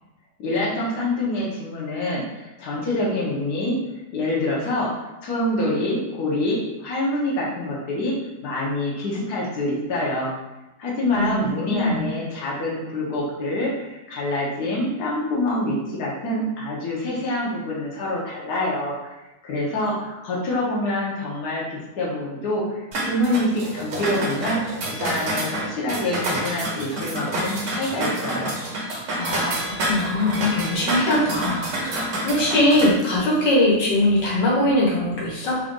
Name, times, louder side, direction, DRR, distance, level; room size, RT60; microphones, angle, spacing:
voice 1, 0.4-3.8 4.1-8.2 8.4-10.3 10.8-19.1 19.4-24.6 24.9-28.5, left 1 dB, 65° left, -5 dB, 1.4 m, -26 dB
voice 2, 11.1-12.1 28.9-35.6, left 1 dB, 85° left, -4 dB, 1.7 m, -22 dB
sound 1, 22.9-32.9, right 1 dB, 55° right, 0.9 m, -28 dB
3.8 x 2.5 x 3.6 m, 1.0 s
omnidirectional pair, 1.9 m